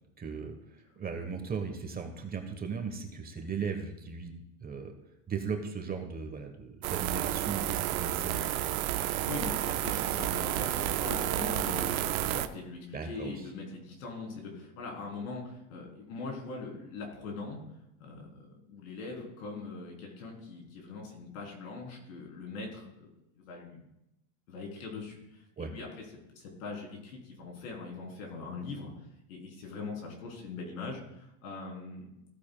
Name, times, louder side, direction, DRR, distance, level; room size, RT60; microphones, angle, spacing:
voice 1, 0.2-0.6 1.0-4.9 5.3-8.5 12.9-13.4 25.6-25.7, right 5 dB, 20° right, 5 dB, 1.2 m, -37 dB
sound 1, 6.8-12.5, right 13 dB, 80° right, 0.7 m, -31 dB
voice 2, 9.1-17.6 18.0-23.1 23.3-23.9 24.5-25.9 26.3-28.9 29.3-32.1, left 3 dB, 75° left, 0 dB, 3.7 m, -41 dB
15.5 x 8.4 x 2.3 m, 0.85 s
supercardioid pair, 110°, 42 cm